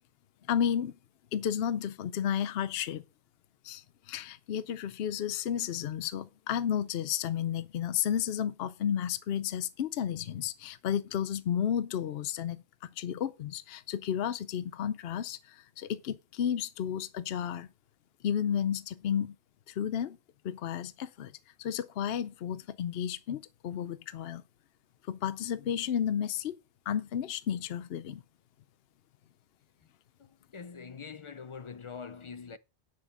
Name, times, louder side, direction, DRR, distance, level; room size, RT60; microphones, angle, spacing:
voice 1, 0.5-0.9 1.3-3.0 3.6-12.6 13.0-17.7 18.2-19.3 19.7-20.2 20.4-21.3 21.6-24.4 25.1-26.5 26.9-28.2, left 9 dB, 65° left, 0.8 m, -32 dB
voice 2, 30.2-32.6, left 5 dB, 45° left, 0.4 m, -44 dB
9.6 x 6.3 x 5.3 m
omnidirectional pair, 1.1 m